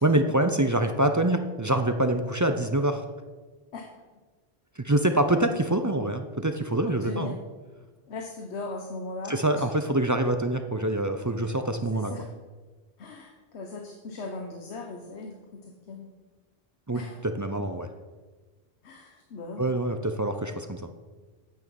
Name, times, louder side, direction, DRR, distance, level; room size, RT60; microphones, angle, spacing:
voice 1, 0.0-3.0 4.8-7.4 9.3-12.1 16.9-17.9 19.6-20.8, right 1 dB, 25° right, 7 dB, 0.4 m, -25 dB
voice 2, 6.8-7.3 8.1-9.7 11.9-12.3 13.0-16.1 16.9-17.2 17.6-17.7 18.8-19.7, left 3 dB, 85° left, 3 dB, 1.2 m, -38 dB
9.4 x 6.1 x 7.0 m, 1.3 s
omnidirectional pair, 1.1 m